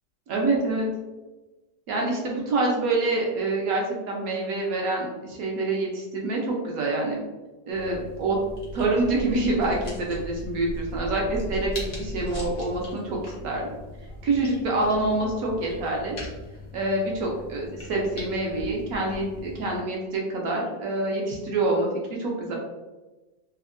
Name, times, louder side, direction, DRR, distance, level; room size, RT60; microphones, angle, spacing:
voice 1, 0.3-0.9 1.9-7.2 7.7-8.4 8.7-13.7 14.2-16.2 16.7-22.5, right 2 dB, 70° right, -2 dB, 0.8 m, -26 dB
sound 1, 7.7-19.8, left 1 dB, 80° left, 0.4 m, -38 dB
3.4 x 2.1 x 2.4 m, 1.1 s
omnidirectional pair, 2.0 m